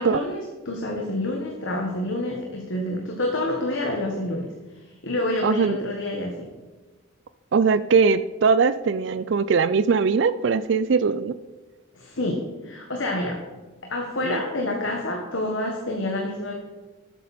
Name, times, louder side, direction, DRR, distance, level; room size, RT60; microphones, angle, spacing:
voice 1, 0.0-4.5 5.0-6.5 11.9-13.4 13.8-16.5, left 1 dB, 70° left, 1 dB, 1.6 m, -28 dB
voice 2, 5.4-5.8 7.5-11.3 14.2-14.4, right 5 dB, 60° right, 14 dB, 0.4 m, -21 dB
13.0 x 9.1 x 4.3 m, 1.3 s
head